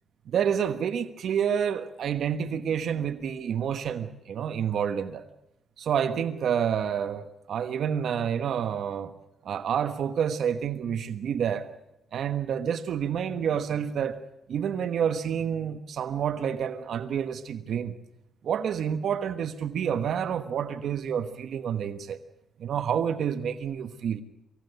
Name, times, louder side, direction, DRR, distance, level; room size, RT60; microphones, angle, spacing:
voice 1, 0.3-5.3 5.8-9.1 9.4-11.7 12.1-14.2 14.5-17.9 18.4-22.2 22.6-24.2, right 8 dB, 70° right, 1.3 m, -28 dB
23.5 x 17.0 x 8.1 m
cardioid pair, 80°, 0 cm